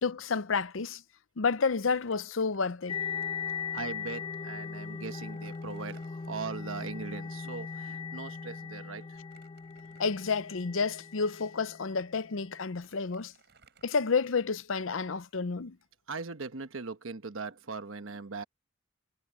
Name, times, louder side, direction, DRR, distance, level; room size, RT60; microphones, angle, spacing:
voice 1, 0.0-1.0 1.4-3.0 10.0-13.3 13.8-15.8, left 5 dB, 70° left, 0.7 m, -30 dB
Crumpling crinkling, 1.9-3.2 3.5-3.6 4.5-4.6 5.0-6.8 9.0-10.6 11.2-11.3 12.2-12.3 12.6-14.6, right 5 dB, 55° right, 4.7 m, -64 dB
sound 1, 2.9-12.4, left 6 dB, 25° left, 0.3 m, -39 dB
voice 2, 3.7-9.2 16.1-18.4, right 4 dB, 75° right, 1.1 m, -40 dB
head